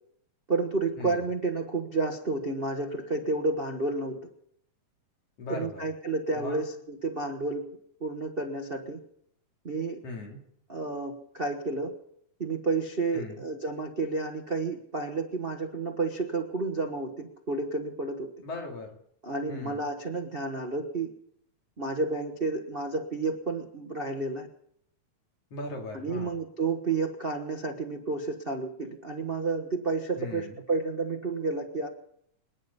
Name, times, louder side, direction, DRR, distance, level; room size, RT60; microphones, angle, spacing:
voice 1, 0.5-4.2 5.5-7.6 8.0-9.0 9.6-10.0 10.7-11.9 12.4-18.3 19.2-21.1 21.8-24.5 25.9-31.9, right 3 dB, 55° right, 2 dB, 0.6 m, -31 dB
voice 2, 5.4-5.9 6.3-6.7 10.0-10.4 13.1-13.4 18.4-19.0 19.5-19.9 25.5-26.4 30.2-30.6, left 2 dB, 55° left, 0 dB, 3.7 m, -38 dB
27.5 x 9.8 x 5.4 m, 0.71 s
omnidirectional pair, 3.4 m